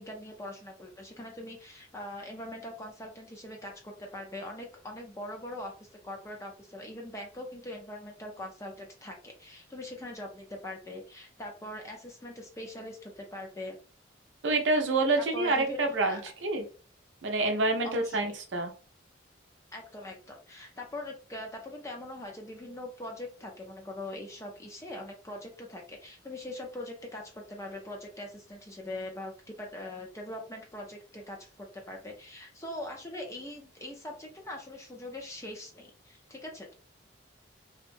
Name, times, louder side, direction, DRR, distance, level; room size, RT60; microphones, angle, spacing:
voice 1, 0.0-5.7 6.0-13.8 15.2-15.8 16.1-16.2 17.8-18.3 19.7-36.7, left 1 dB, 15° left, 1 dB, 0.5 m, -42 dB
voice 2, 14.4-16.6 17.2-18.7, right 2 dB, 70° right, 4 dB, 0.5 m, -27 dB
2.7 x 2.1 x 2.5 m, 0.39 s
head